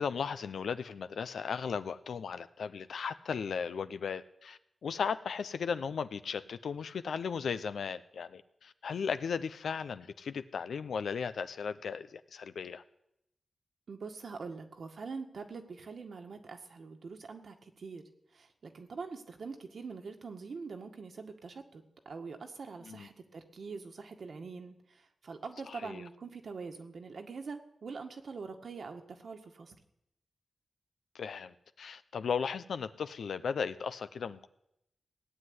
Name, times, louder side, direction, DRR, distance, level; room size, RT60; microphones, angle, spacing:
voice 1, 0.0-12.8 22.8-23.1 25.6-26.0 31.1-34.5, left 6 dB, 90° left, 12 dB, 0.7 m, -36 dB
voice 2, 13.9-18.0 18.3-24.8 25.2-29.8, right 4 dB, 65° right, 5 dB, 1.8 m, -44 dB
17.5 x 7.8 x 9.7 m, 0.80 s
wide cardioid pair, 90°, 0 cm